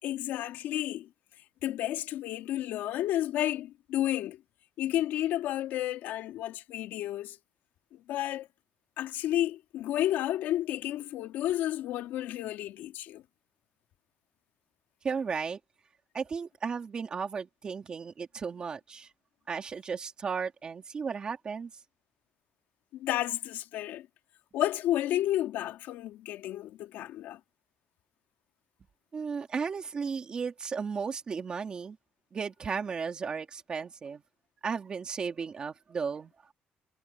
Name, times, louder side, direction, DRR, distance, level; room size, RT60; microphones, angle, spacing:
voice 1, 0.0-1.1 1.6-4.4 4.8-7.4 7.9-8.5 9.0-13.2 22.9-24.1 24.5-27.4, left 13 dB, 80° left, 2.8 m, -31 dB
voice 2, 15.0-15.6 16.1-19.1 19.5-21.7 29.1-32.0 32.3-34.2 34.6-36.3, right 5 dB, 30° right, 2.5 m, -34 dB
cardioid pair, 175°, 3 cm